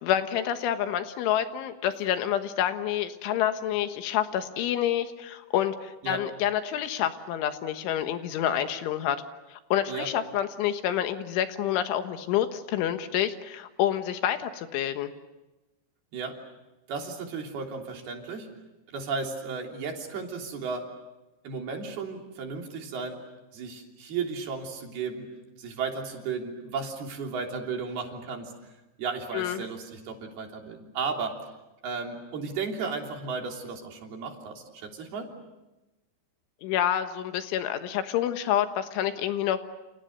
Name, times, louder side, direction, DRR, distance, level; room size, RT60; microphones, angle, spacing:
voice 1, 0.0-9.2 9.5-15.1 29.3-29.6 36.6-39.6, left 11 dB, 85° left, 8 dB, 3.8 m, -28 dB
voice 2, 16.9-18.5 18.9-20.9 21.4-23.3 23.5-25.3 25.6-28.5 29.0-31.4 31.8-35.3, right 5 dB, 60° right, 1 dB, 5.1 m, -34 dB
30.0 x 29.5 x 6.7 m, 1.0 s
omnidirectional pair, 5.4 m